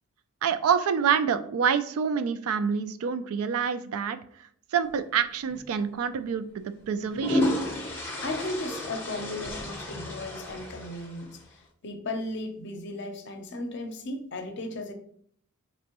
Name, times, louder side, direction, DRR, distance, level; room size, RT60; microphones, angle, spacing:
voice 1, 0.4-4.2 4.7-7.5, right 7 dB, 75° right, 11 dB, 0.3 m, -27 dB
sound 1, 5.5-5.7 6.8-11.4, left 1 dB, 10° left, 0.6 m, -32 dB
voice 2, 8.2-14.9, left 2 dB, 50° left, 5 dB, 0.6 m, -36 dB
4.3 x 3.0 x 2.9 m, 0.63 s
head